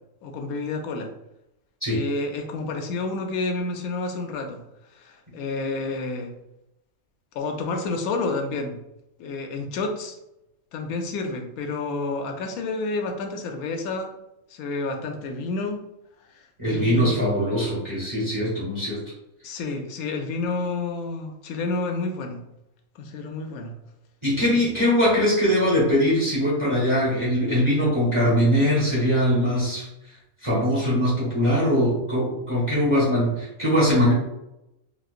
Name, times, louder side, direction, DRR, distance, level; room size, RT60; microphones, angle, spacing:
voice 1, 0.2-1.1 1.9-4.6 4.9-6.3 7.3-8.8 9.2-10.2 10.7-14.1 14.5-15.8 16.3-17.2 19.4-22.4 23.0-23.7 24.5-24.7, left 3 dB, 90° left, 4 dB, 1.1 m, -30 dB
voice 2, 16.6-19.0 24.2-29.9 30.4-34.1, equal, 25° right, -7 dB, 1.1 m, -21 dB
4.1 x 2.4 x 2.4 m, 0.87 s
omnidirectional pair, 1.5 m